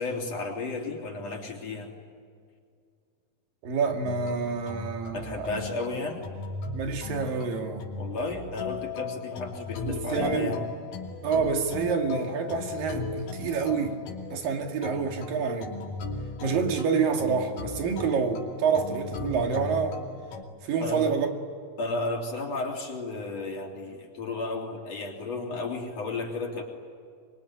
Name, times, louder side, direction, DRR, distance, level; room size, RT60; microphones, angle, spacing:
voice 1, 0.0-1.9 5.1-6.2 8.0-10.6 20.8-21.1 21.8-26.6, left 3 dB, 50° left, 1 dB, 4.4 m, -33 dB
voice 2, 3.6-5.6 6.7-7.9 9.9-10.6 11.2-14.0 14.3-15.8 16.4-20.0 20.6-21.3, right 5 dB, 80° right, 3 dB, 4.0 m, -28 dB
sound 1, 4.0-20.4, left 4 dB, 70° left, 4.2 m, -37 dB
25.5 x 23.5 x 9.9 m, 2.2 s
omnidirectional pair, 3.9 m